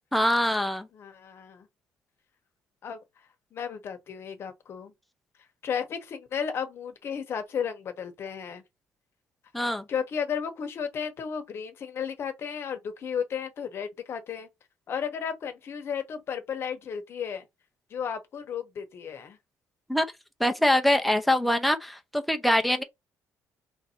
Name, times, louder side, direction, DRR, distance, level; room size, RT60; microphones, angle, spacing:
voice 1, 0.1-0.9 9.5-9.8 19.9-20.1 20.4-22.8, left 1 dB, ahead, 0.6 m, -24 dB
voice 2, 0.9-1.7 2.8-3.0 3.5-4.9 5.6-8.6 9.6-14.5 14.9-17.5 17.9-19.4, left 7 dB, 45° left, 1.0 m, -34 dB
3.3 x 2.7 x 4.3 m
cardioid pair, 140°, 6 cm